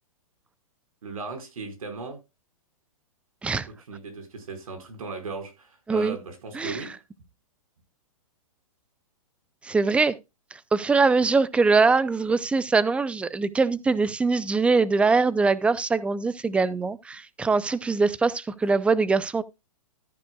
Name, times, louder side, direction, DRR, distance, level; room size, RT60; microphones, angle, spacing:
voice 1, 1.0-2.2 3.7-7.0, right 4 dB, 75° right, 5.0 m, -37 dB
voice 2, 9.6-10.2 10.5-19.4, right 4 dB, 5° right, 0.5 m, -22 dB
13.5 x 9.2 x 2.3 m
hypercardioid pair, 135°, 18 cm